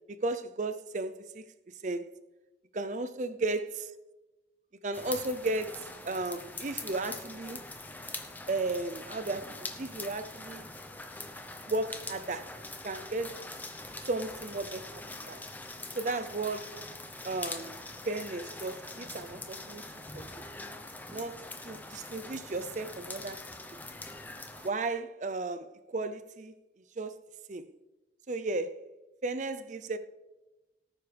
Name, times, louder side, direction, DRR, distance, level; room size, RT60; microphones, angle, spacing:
voice 1, 0.1-1.4 1.8-2.1 2.7-3.9 4.8-7.6 8.5-10.7 11.7-12.5 12.8-13.4 14.0-15.4 16.0-16.8 17.2-17.8 18.1-19.8 20.1-20.4 21.1-23.4 24.6-26.5 27.0-27.2 27.5-27.7 28.3-28.8 29.2-30.0, right 2 dB, 45° right, 0.5 m, -34 dB
sound 1, 4.9-24.7, left 2 dB, 10° left, 0.7 m, -43 dB
18.0 x 9.3 x 3.4 m
head